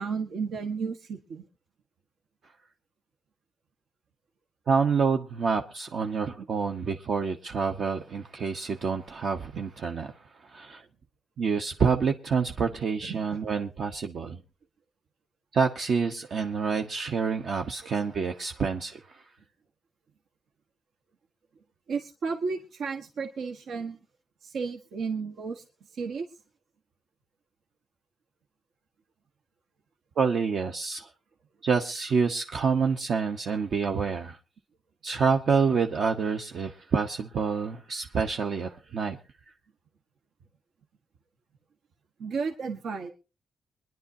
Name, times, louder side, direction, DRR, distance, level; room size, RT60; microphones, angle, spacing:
voice 1, 0.0-1.4 6.8-6.9 9.5-9.6 13.1-13.4 21.9-24.0 24.4-25.6 25.9-26.3 42.2-43.1, right 5 dB, 80° right, 1.3 m, -33 dB
voice 2, 4.7-10.1 10.5-10.8 11.4-14.4 15.5-19.0 30.2-31.1 31.6-34.4 35.0-39.2, right 5 dB, 60° right, 1.0 m, -27 dB
23.5 x 10.5 x 2.8 m
wide cardioid pair, 130°, 0 cm